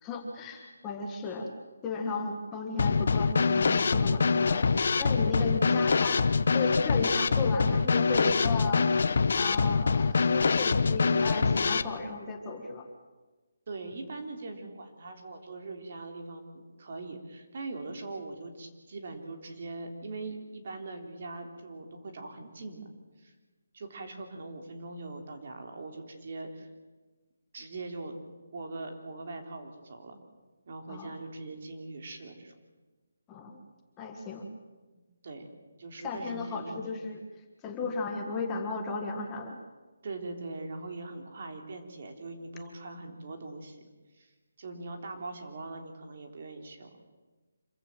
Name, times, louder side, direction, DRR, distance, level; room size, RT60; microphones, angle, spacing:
voice 1, 0.0-1.5 1.8-6.2 6.5-8.8 9.4-12.8 30.9-31.1 33.3-33.6 34.0-34.5 36.0-37.2 37.6-39.6, left 3 dB, 15° left, 1 dB, 1.6 m, -35 dB
Drum kit / Snare drum, 2.8-11.8, left 4 dB, 55° left, 0.9 m, -25 dB
voice 2, 13.7-22.8 23.2-23.3 23.7-26.7 27.5-28.2 28.5-30.2 30.7-32.5 34.9-35.5 35.8-36.8 40.0-43.8 44.1-44.3 44.6-46.9, right 3 dB, 45° right, 4 dB, 3.5 m, -41 dB
26.5 x 15.0 x 7.7 m, 1.3 s
hypercardioid pair, 170°, 0 cm